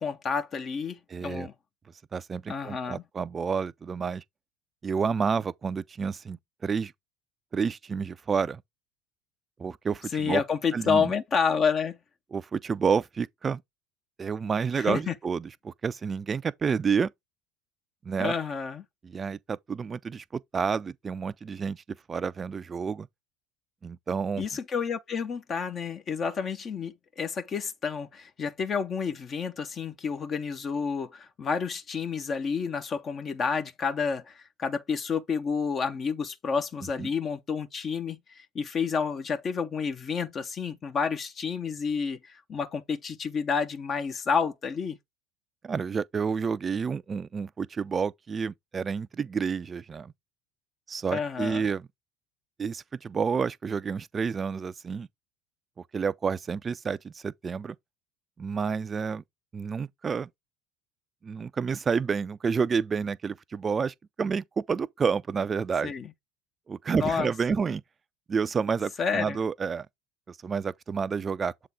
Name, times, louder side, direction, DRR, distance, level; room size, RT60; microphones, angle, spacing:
voice 1, 0.0-1.5 2.5-3.0 10.1-12.0 14.7-15.1 18.2-18.8 24.4-45.0 51.1-51.7 65.8-66.1 66.9-67.3 69.0-69.4, left 6 dB, 40° left, 0.8 m, -30 dB
voice 2, 1.1-1.5 2.1-4.2 4.8-6.9 7.5-8.6 9.6-10.4 10.7-11.1 12.3-13.6 14.2-17.1 18.0-18.3 19.0-21.8 22.1-23.1 23.8-24.4 37.0-37.1 45.6-50.1 50.9-51.9 52.6-55.1 55.9-57.8 58.4-59.2 59.5-60.3 61.2-65.9 66.7-67.8 68.3-69.9 70.3-71.7, right 6 dB, 30° right, 0.4 m, -29 dB
7.4 x 3.8 x 3.6 m
hypercardioid pair, 75°, 0 cm